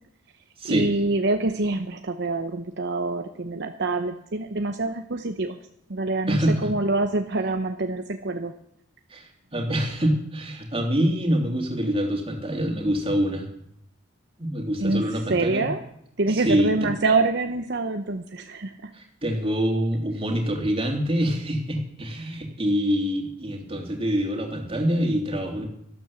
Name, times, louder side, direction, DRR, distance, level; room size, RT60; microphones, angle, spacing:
voice 1, 0.6-5.6 5.9-8.5 14.8-15.8 16.2-18.9, right 3 dB, 60° right, 6 dB, 0.8 m, -26 dB
voice 2, 6.3-6.7 9.1-13.5 14.4-15.7 16.3-16.9 18.9-25.7, equal, 30° right, 2 dB, 2.7 m, -25 dB
12.5 x 12.5 x 7.0 m, 0.73 s
head